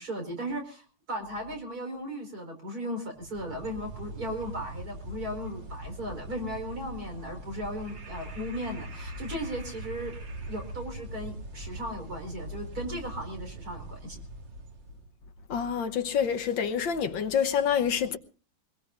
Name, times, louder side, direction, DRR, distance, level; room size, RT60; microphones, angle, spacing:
voice 1, 0.0-10.1 10.4-14.2, equal, 45° right, 5.3 m, -36 dB
sound 1, 3.2-15.1, right 1 dB, 60° right, 2.7 m, -41 dB
voice 2, 15.5-18.2, left 7 dB, 65° left, 1.8 m, -27 dB
23.5 x 21.5 x 2.5 m
omnidirectional pair, 2.3 m